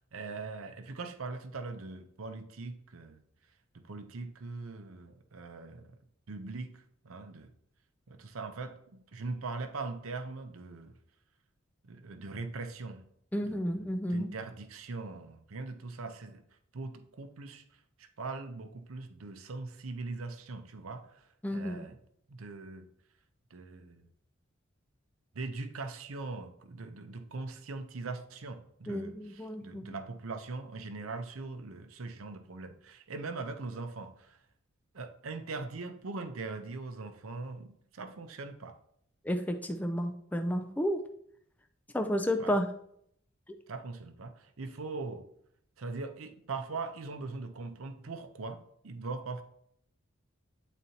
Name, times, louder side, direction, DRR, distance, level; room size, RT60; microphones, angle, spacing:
voice 1, 0.0-3.2 3.7-6.0 6.3-7.5 8.1-11.0 11.8-13.0 13.5-13.6 14.1-16.4 16.7-17.6 18.0-22.0 22.3-22.9 23.5-24.1 25.3-34.4 34.9-38.8 42.4-42.6 43.7-45.2 45.8-49.4, right 3 dB, 85° right, 8 dB, 0.6 m, -41 dB
voice 2, 13.3-14.3 21.4-21.9 28.9-30.0 39.2-41.0 41.9-42.7, equal, 10° left, 6 dB, 0.3 m, -31 dB
9.1 x 4.1 x 2.8 m, 0.70 s
head